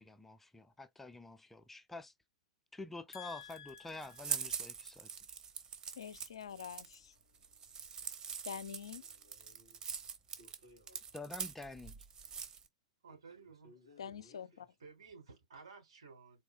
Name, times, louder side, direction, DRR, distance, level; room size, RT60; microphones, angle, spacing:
voice 1, 0.0-2.1 2.7-5.1 11.1-12.0, left 2 dB, 5° left, 0.4 m, -48 dB
voice 2, 3.1-4.1 6.0-7.1 8.4-9.0 14.0-14.7, left 8 dB, 65° left, 0.5 m, -46 dB
sound 1, 3.3-12.7, right 6 dB, 25° right, 0.8 m, -43 dB
voice 3, 9.0-9.8 10.4-11.2 13.1-14.7, left 1 dB, 85° right, 2.9 m, -64 dB
voice 4, 13.0-13.7 14.1-14.2 14.8-16.4, right 5 dB, 70° right, 3.3 m, -55 dB
4.3 x 3.0 x 2.2 m
figure-of-eight pair, 100°, 3 cm